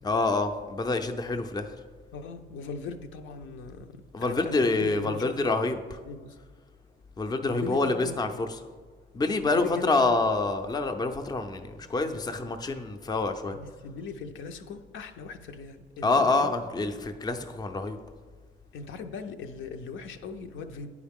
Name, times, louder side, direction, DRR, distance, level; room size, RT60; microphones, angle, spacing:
voice 1, 0.0-1.8 4.1-6.0 7.2-8.6 9.1-13.6 16.0-18.0, left 3 dB, 20° left, 7 dB, 0.5 m, -27 dB
voice 2, 2.1-5.5 6.0-6.4 7.4-8.2 9.4-10.1 13.5-17.0 18.7-20.9, left 5 dB, 75° left, 6 dB, 0.6 m, -39 dB
9.5 x 4.7 x 3.6 m, 1.5 s
cardioid pair, 90°, 20 cm